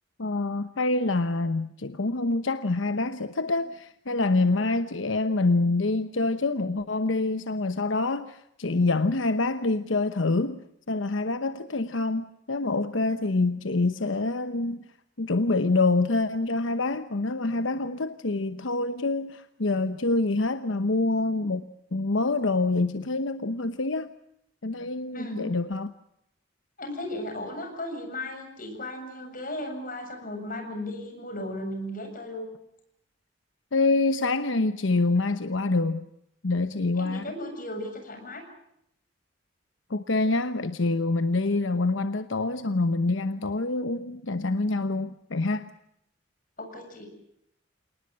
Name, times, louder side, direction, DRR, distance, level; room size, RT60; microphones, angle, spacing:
voice 1, 0.2-14.8 15.2-24.1 24.6-25.9 33.7-36.1 36.4-37.3 39.9-45.7, left 3 dB, 85° left, 1.0 m, -26 dB
voice 2, 25.1-25.5 26.8-32.5 37.0-38.4 46.6-47.1, left 1 dB, 45° left, 7.3 m, -36 dB
28.0 x 19.5 x 7.6 m
head